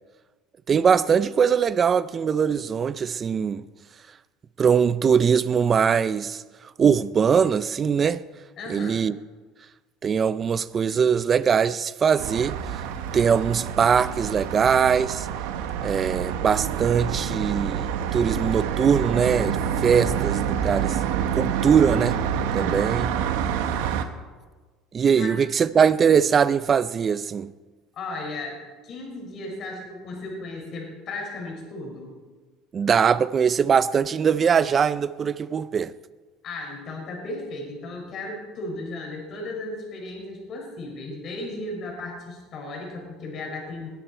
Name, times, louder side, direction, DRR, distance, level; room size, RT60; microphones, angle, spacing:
voice 1, 0.7-3.6 4.6-6.4 6.8-8.2 8.7-9.2 10.0-12.6 13.1-15.3 15.8-21.0 21.3-22.2 22.5-23.1 24.9-27.5 32.7-35.9, right 7 dB, 30° right, 0.5 m, -21 dB
voice 2, 8.6-9.0 25.2-25.3 27.9-32.2 36.4-43.9, left 2 dB, 45° left, 5.7 m, -35 dB
sound 1, 12.2-24.0, right 8 dB, 85° right, 1.2 m, -27 dB
21.0 x 12.0 x 4.4 m
supercardioid pair, 125°, 0 cm